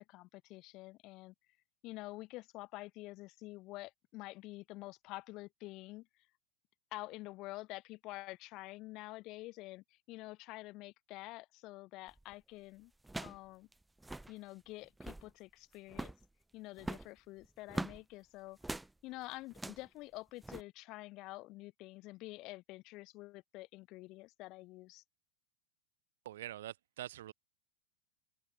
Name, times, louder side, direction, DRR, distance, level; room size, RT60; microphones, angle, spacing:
voice 1, 0.0-1.3 1.8-6.1 6.9-12.9 13.2-13.7 14.3-16.1 16.5-18.6 19.0-25.0, left 20 dB, 45° left, 5.7 m, -48 dB
sound 1, 12.1-12.3 13.0-13.5 13.7-13.8 14.0-14.3 14.8-15.3 15.9-16.2 16.8-18.0 18.6-18.9 19.5-19.9 20.4-20.6, right 2 dB, 5° right, 3.1 m, -42 dB
voice 2, 26.2-27.3, right 13 dB, 75° right, 4.3 m, -45 dB
open air
hypercardioid pair, 120°, 0 cm